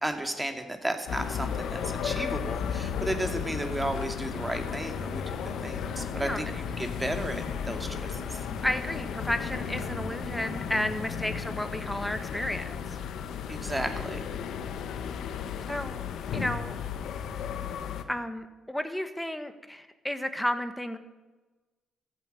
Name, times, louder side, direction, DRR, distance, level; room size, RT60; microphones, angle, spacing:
voice 1, 0.0-8.4 13.5-14.2, right 1 dB, 10° right, 6 dB, 2.4 m, -34 dB
sound 1, 1.1-18.0, left 7 dB, 75° left, 1.4 m, -34 dB
sound 2, 4.6-13.4, left 3 dB, 30° left, 1.5 m, -46 dB
voice 2, 6.2-6.6 8.5-12.8 15.7-16.0 16.3-16.8 18.1-21.0, left 1 dB, 5° left, 9 dB, 1.6 m, -32 dB
15.0 x 9.8 x 9.0 m, 1.2 s
cardioid pair, 90°, 0 cm